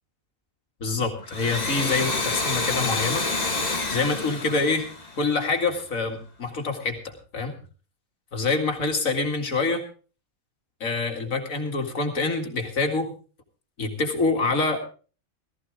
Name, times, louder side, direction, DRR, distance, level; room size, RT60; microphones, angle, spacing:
voice 1, 0.8-3.2 3.9-4.9 5.2-7.5 8.3-9.8 10.8-13.1 13.8-14.8, left 3 dB, 75° left, 5 dB, 2.6 m, -26 dB
Domestic sounds home sounds, 1.2-5.7, left 3 dB, 30° left, 1.7 m, -28 dB
18.5 x 14.0 x 3.7 m, 0.37 s
omnidirectional pair, 1.4 m